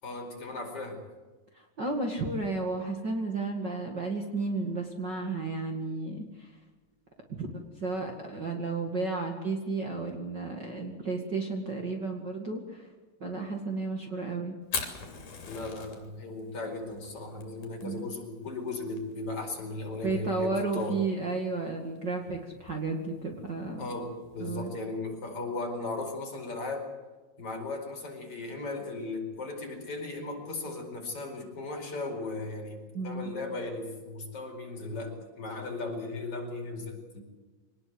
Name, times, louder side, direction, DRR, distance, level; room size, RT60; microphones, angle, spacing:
voice 1, 0.0-1.0 15.5-21.0 23.8-26.9 27.4-37.2, left 2 dB, 40° left, 2 dB, 5.8 m, -37 dB
voice 2, 1.5-6.5 7.3-12.9 13.2-14.6 17.8-18.1 20.0-23.8 24.4-24.7 32.9-33.3, right 3 dB, 35° right, 2 dB, 2.5 m, -33 dB
Fire, 14.6-24.4, left 5 dB, 65° left, 4.5 m, -43 dB
24.5 x 19.5 x 8.0 m, 1.3 s
omnidirectional pair, 3.9 m